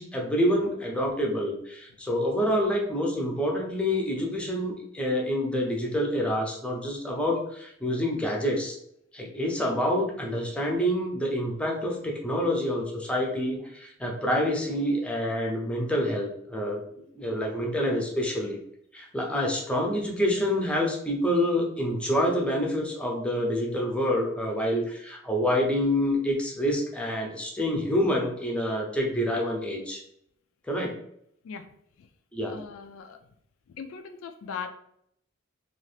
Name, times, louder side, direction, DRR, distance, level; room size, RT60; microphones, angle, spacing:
voice 1, 0.0-8.8 9.1-16.8 17.1-18.6 18.9-30.0 30.7-31.0 32.3-32.6, equal, 5° left, 0 dB, 0.5 m, -27 dB
voice 2, 32.5-33.2 33.8-34.7, left 6 dB, 70° left, 7 dB, 0.3 m, -39 dB
2.7 x 2.4 x 3.2 m, 0.71 s
head